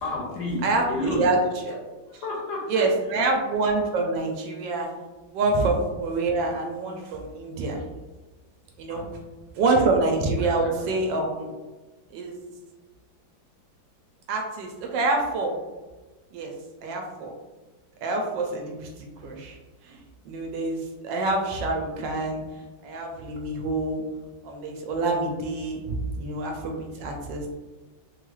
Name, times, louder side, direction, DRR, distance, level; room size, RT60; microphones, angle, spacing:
voice 1, 0.0-1.4 2.1-3.2 8.9-9.2 10.4-11.0, left 1 dB, 70° left, -2 dB, 1.0 m, -32 dB
voice 2, 0.6-1.4 1.7-1.8 2.7-4.9 5.3-7.8 8.8-9.1 9.6-11.5 12.1-12.4 14.3-15.5 16.3-16.5 16.8-17.3 18.0-19.6 19.8-22.4 22.8-24.0 24.4-27.5, right 3 dB, 75° right, 1 dB, 1.1 m, -26 dB
3.3 x 2.3 x 3.0 m, 1.2 s
omnidirectional pair, 2.1 m